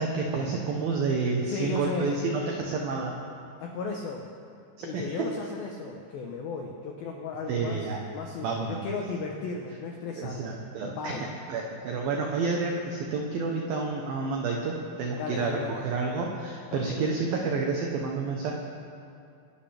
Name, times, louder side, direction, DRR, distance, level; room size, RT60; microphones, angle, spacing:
voice 1, 0.0-3.1 4.8-5.3 7.5-8.1 8.4-8.9 10.2-18.6, right 4 dB, 85° right, 1 dB, 2.1 m, -30 dB
voice 2, 1.5-2.1 3.6-4.3 4.8-10.5 11.0-11.3 15.2-15.8 16.7-17.1, left 4 dB, 85° left, 1 dB, 2.1 m, -35 dB
24.5 x 11.5 x 3.4 m, 2.5 s
omnidirectional pair, 5.6 m